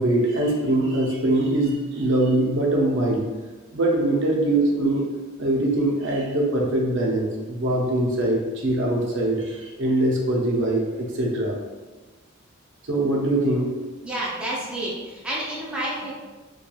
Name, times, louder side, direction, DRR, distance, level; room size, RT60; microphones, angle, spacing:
voice 1, 0.0-3.3 3.7-5.0 5.4-11.5 12.9-13.7 16.0-16.1, right 1 dB, 60° right, -2 dB, 0.5 m, -22 dB
voice 2, 14.0-16.1, right 1 dB, 5° right, -7 dB, 0.4 m, -29 dB
2.9 x 2.2 x 2.3 m, 1.3 s
head